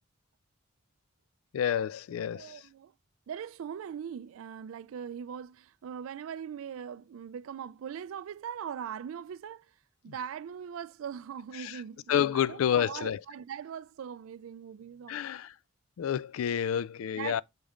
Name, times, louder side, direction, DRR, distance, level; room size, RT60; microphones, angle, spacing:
voice 1, 1.5-2.6 11.6-11.7 12.1-13.2 15.1-15.5 16.0-17.4, left 9 dB, 85° left, 0.3 m, -29 dB
voice 2, 2.3-2.9 3.3-9.7 10.0-15.3 17.2-17.4, right 8 dB, 80° right, 0.3 m, -41 dB
6.2 x 5.2 x 3.7 m
head